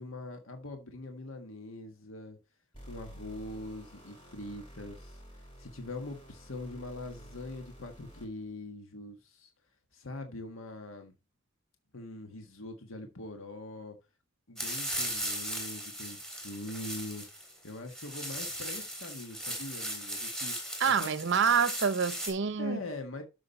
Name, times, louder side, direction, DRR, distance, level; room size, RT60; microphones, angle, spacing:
voice 1, 0.0-2.4 2.8-9.5 9.9-11.1 11.9-14.0 14.5-20.6 20.8-21.2 22.6-23.2, left 2 dB, 75° left, 1.5 m, -43 dB
sound 1, 2.7-8.5, equal, 25° left, 7.2 m, -51 dB
sound 2, 14.6-22.3, equal, 5° left, 3.5 m, -37 dB
voice 2, 20.8-22.8, right 6 dB, 60° right, 0.7 m, -27 dB
12.5 x 6.2 x 4.1 m
head